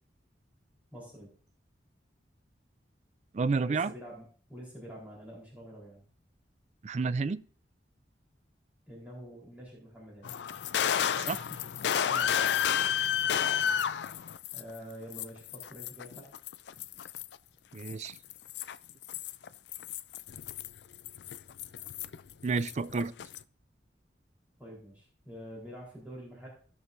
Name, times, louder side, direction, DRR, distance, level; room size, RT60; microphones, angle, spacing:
voice 1, 0.9-1.3 3.6-6.0 8.9-10.4 11.3-11.7 12.1-12.5 14.5-16.2 24.6-26.5, equal, 10° right, 3.9 m, -47 dB
voice 2, 3.3-3.9 6.8-7.4 11.2-11.4 17.7-18.1 22.4-23.1, right 4 dB, 40° right, 0.4 m, -30 dB
sound 1, 10.2-14.8 15.1-17.3 17.8-22.3 22.6-23.4, left 8 dB, 70° left, 0.4 m, -31 dB
17.0 x 6.3 x 2.6 m
head